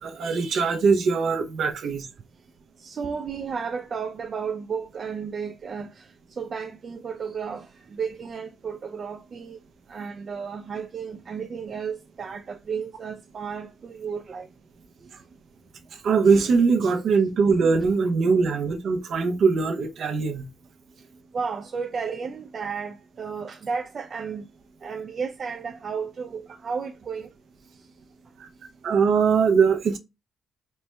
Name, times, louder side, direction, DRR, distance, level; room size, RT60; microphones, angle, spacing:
voice 1, 0.0-2.1 16.0-20.5 28.4-28.5 28.8-30.0, right 5 dB, 75° right, 0.8 m, -21 dB
voice 2, 2.8-9.6 9.9-14.5 15.0-15.1 21.3-24.5 24.8-27.3 27.7-27.9, right 6 dB, 55° right, 0.4 m, -33 dB
4.3 x 2.2 x 3.2 m
cardioid pair, 75°, 0 cm